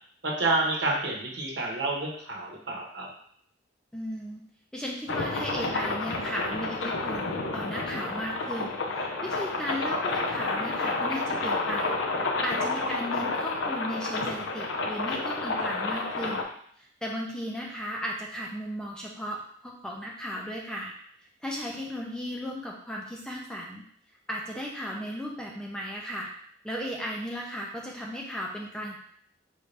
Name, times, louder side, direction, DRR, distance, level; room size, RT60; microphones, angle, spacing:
voice 1, 0.2-3.1, right 2 dB, 70° right, -1 dB, 1.1 m, -29 dB
voice 2, 3.9-4.4 4.7-11.9 12.4-16.5 16.8-20.9 21.4-23.8 24.3-26.3 26.6-29.0, equal, 5° left, -2 dB, 0.6 m, -35 dB
sound 1, 5.1-16.4, left 3 dB, 85° left, 0.6 m, -30 dB
4.8 x 2.7 x 3.3 m, 0.62 s
head